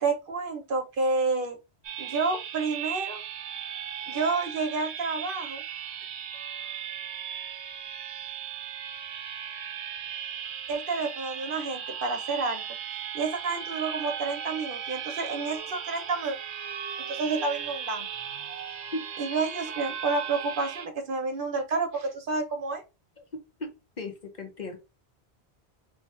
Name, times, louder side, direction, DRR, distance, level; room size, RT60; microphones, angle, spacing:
voice 1, 0.0-1.6 2.0-3.2 4.1-5.6 10.7-12.6 13.1-16.4 17.1-18.1 19.2-22.8, right 4 dB, 55° right, 5 dB, 0.9 m, -29 dB
sound 1, 1.8-20.9, right 8 dB, 85° right, 0.9 m, -37 dB
voice 2, 23.6-24.8, left 2 dB, 50° left, 4 dB, 0.8 m, -36 dB
3.1 x 2.2 x 4.2 m, 0.27 s
omnidirectional pair, 1.1 m